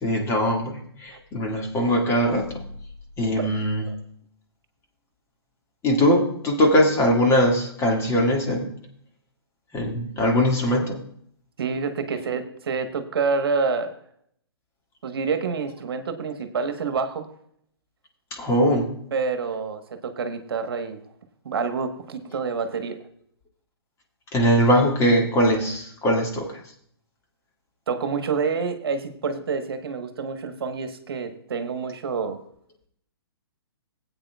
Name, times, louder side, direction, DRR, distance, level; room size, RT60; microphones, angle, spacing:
voice 1, 0.0-2.6 3.2-3.9 5.8-8.7 9.7-11.0 18.3-18.9 24.3-26.6, equal, 20° left, 1 dB, 2.0 m, -21 dB
voice 2, 11.6-13.9 15.0-17.3 19.1-21.0 21.4-23.0 27.9-32.4, right 5 dB, 65° right, 7 dB, 1.2 m, -27 dB
18.0 x 8.7 x 2.3 m, 0.67 s
hypercardioid pair, 130°, 13 cm